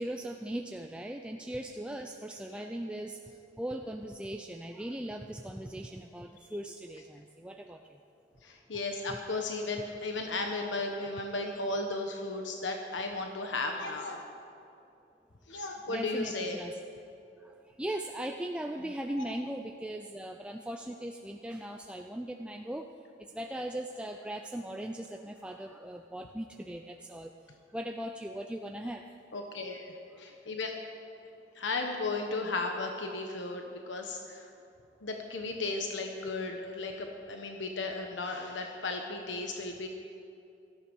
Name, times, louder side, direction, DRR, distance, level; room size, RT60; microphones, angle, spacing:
voice 1, 0.0-8.0 9.1-9.2 15.6-16.8 17.4-22.9 23.3-27.3 27.7-29.0 30.1-30.2, right 1 dB, 5° right, 3 dB, 0.4 m, -39 dB
voice 2, 8.4-14.2 15.5-16.6 29.3-30.7 31.5-34.5 35.0-39.9, left 3 dB, 75° left, 3 dB, 1.2 m, -35 dB
17.5 x 13.5 x 5.4 m, 2.6 s
head